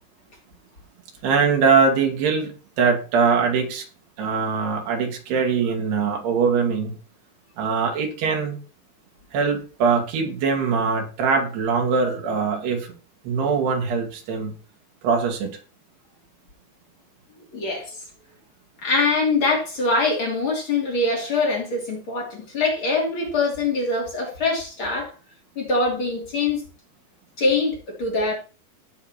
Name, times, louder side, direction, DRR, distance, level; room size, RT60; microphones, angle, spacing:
voice 1, 1.2-3.9 4.2-6.9 7.6-8.6 9.3-12.9 13.2-14.5 15.0-15.6, right 5 dB, 85° right, 4.3 m, -22 dB
voice 2, 17.5-18.0 18.8-25.1 25.5-26.6 27.4-28.3, left 3 dB, 35° left, 3.4 m, -23 dB
18.0 x 7.0 x 3.0 m
omnidirectional pair, 4.5 m